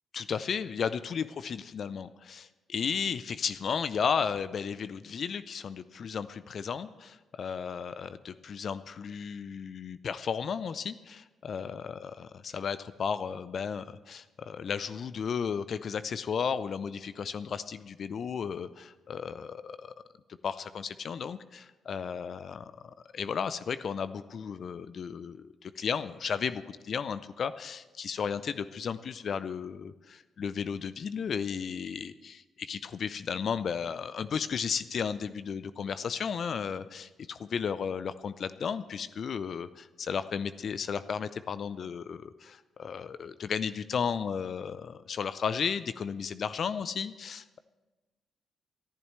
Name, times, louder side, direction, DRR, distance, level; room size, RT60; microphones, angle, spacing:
voice 1, 0.1-19.9 20.4-47.6, left 6 dB, 55° left, 14 dB, 0.5 m, -34 dB
29.5 x 11.0 x 3.2 m, 1.2 s
hypercardioid pair, 40°, 0 cm